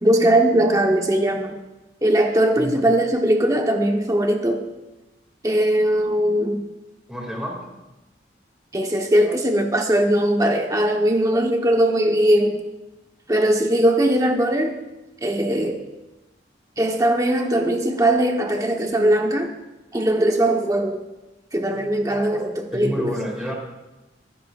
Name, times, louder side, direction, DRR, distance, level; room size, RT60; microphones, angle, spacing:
voice 1, 0.0-1.6 2.0-4.6 5.4-6.6 8.7-12.7 13.3-14.8 15.2-15.8 16.8-19.5 19.9-21.0 21.5-23.1, right 1 dB, 20° right, 2 dB, 1.2 m, -20 dB
voice 2, 2.6-2.9 7.1-7.7 22.7-23.5, equal, 5° right, -1 dB, 2.6 m, -29 dB
25.5 x 9.8 x 2.6 m, 1.0 s
head